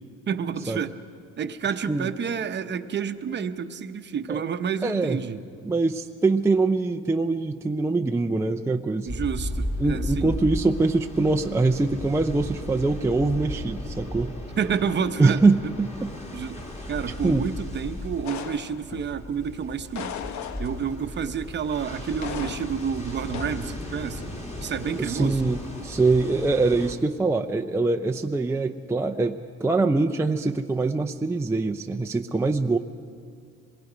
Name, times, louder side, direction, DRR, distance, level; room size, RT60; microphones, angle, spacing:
voice 1, 0.3-0.9 1.4-5.4 9.0-10.4 14.6-15.4 16.3-16.6 16.9-20.2 20.6-24.2 24.6-25.5, right 7 dB, 35° right, 9 dB, 0.8 m, -29 dB
voice 2, 4.8-5.2 5.6-9.1 9.8-14.4 15.2-16.1 17.2-17.5 25.0-32.8, right 3 dB, 10° right, 4 dB, 0.4 m, -23 dB
sound 1, 9.1-26.9, left 1 dB, 20° left, 2.2 m, -35 dB
sound 2, 18.2-19.1 19.9-21.0 22.2-22.9 23.3-23.7, left 8 dB, 65° left, 1.0 m, -36 dB
26.0 x 21.0 x 5.0 m, 2.3 s
cardioid pair, 140°, 31 cm